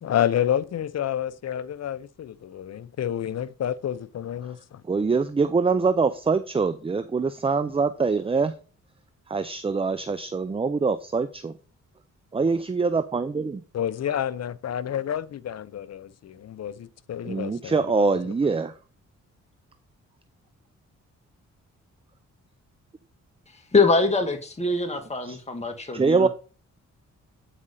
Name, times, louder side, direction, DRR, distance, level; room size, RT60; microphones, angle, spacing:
voice 1, 0.0-4.8 13.7-18.2, left 10 dB, 55° left, 0.6 m, -29 dB
voice 2, 4.9-8.5 9.3-11.5 12.3-13.6 17.2-18.7 25.2-25.4 25.9-26.3, right 4 dB, 20° right, 0.5 m, -24 dB
voice 3, 23.7-26.3, left 3 dB, 20° left, 1.5 m, -23 dB
8.7 x 4.9 x 4.1 m
cardioid pair, 80°, 31 cm